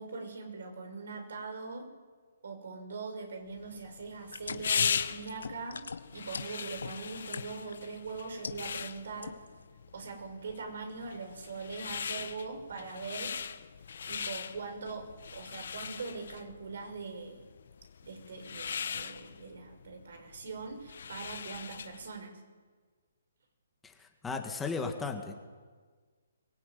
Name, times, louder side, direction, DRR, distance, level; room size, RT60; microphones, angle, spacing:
voice 1, 0.0-1.9 2.4-5.9 6.1-9.4 9.9-13.4 14.1-17.4 18.0-22.4, right 4 dB, 65° right, 5 dB, 5.9 m, -42 dB
sound 1, 3.6-22.1, left 7 dB, 65° left, 1.4 m, -39 dB
sound 2, 4.2-7.8 8.2-8.9 9.2-9.6, left 5 dB, 85° left, 1.5 m, -41 dB
voice 2, 23.8-25.3, left 4 dB, 10° left, 4 dB, 1.9 m, -36 dB
24.5 x 18.0 x 9.4 m, 1.6 s
hypercardioid pair, 155°, 0 cm